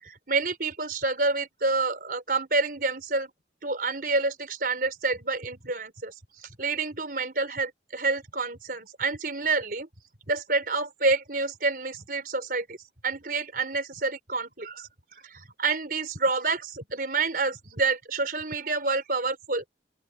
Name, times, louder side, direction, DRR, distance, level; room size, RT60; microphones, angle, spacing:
voice 1, 0.0-3.3 3.6-9.9 10.3-12.8 13.0-14.9 15.2-19.7, right 3 dB, 55° right, 4.7 m, -28 dB
open air
head